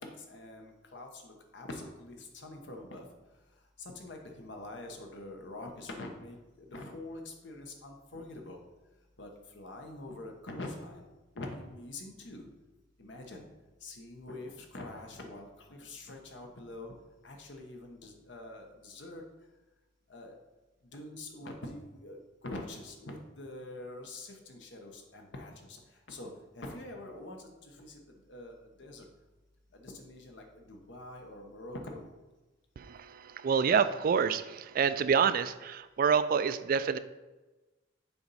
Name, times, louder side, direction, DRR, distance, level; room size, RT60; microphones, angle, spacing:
voice 1, 0.3-3.1 3.8-8.6 9.2-11.1 11.4-12.4 13.0-13.4 13.8-16.9 17.2-19.2 20.1-20.3 20.9-25.8 26.1-26.3 26.6-29.0 29.7-32.1, left 2 dB, 65° left, 3 dB, 1.0 m, -45 dB
voice 2, 32.8-37.0, right 6 dB, 50° right, 13 dB, 0.3 m, -27 dB
7.1 x 4.3 x 4.1 m, 1.1 s
head